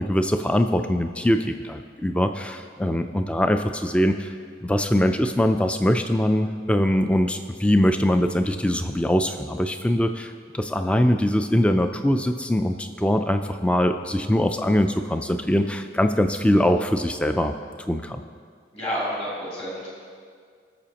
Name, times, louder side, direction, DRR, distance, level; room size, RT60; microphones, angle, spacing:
voice 1, 0.0-4.3 4.6-17.5 17.9-18.2, equal, 5° left, 7 dB, 0.3 m, -22 dB
voice 2, 18.7-19.9, equal, 35° left, -7 dB, 3.1 m, -29 dB
19.0 x 7.0 x 2.9 m, 2.1 s
head